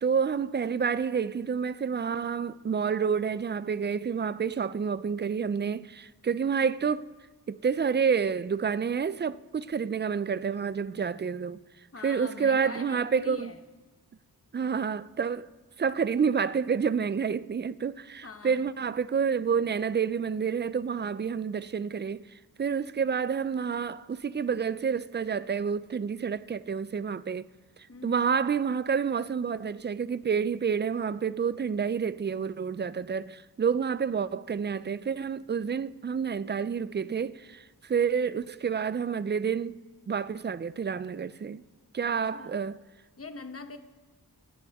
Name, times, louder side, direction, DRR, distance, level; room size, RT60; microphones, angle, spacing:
voice 1, 0.0-7.1 7.5-11.6 12.0-13.5 14.5-15.5 15.8-22.2 22.6-27.5 28.0-39.8 40.1-41.6 41.9-42.8, right 6 dB, 30° right, 0.4 m, -29 dB
voice 2, 11.9-13.6 18.2-18.7 27.9-28.2 42.0-42.6 43.2-43.8, left 3 dB, 35° left, 1.1 m, -43 dB
24.5 x 9.5 x 3.6 m
wide cardioid pair, 90°, 39 cm